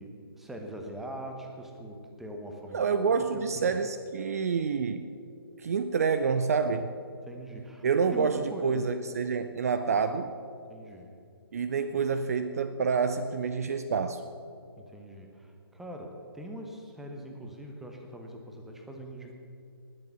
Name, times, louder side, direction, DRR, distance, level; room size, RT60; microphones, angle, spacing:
voice 1, 0.0-3.0 3.3-3.7 7.2-7.8 8.1-8.9 10.7-11.1 14.8-19.3, right 1 dB, ahead, 3 dB, 0.9 m, -42 dB
voice 2, 2.7-5.0 5.6-6.9 7.8-10.3 11.5-14.2, right 5 dB, 40° right, 10 dB, 0.5 m, -28 dB
19.5 x 7.1 x 6.9 m, 2.4 s
figure-of-eight pair, 140°, 13 cm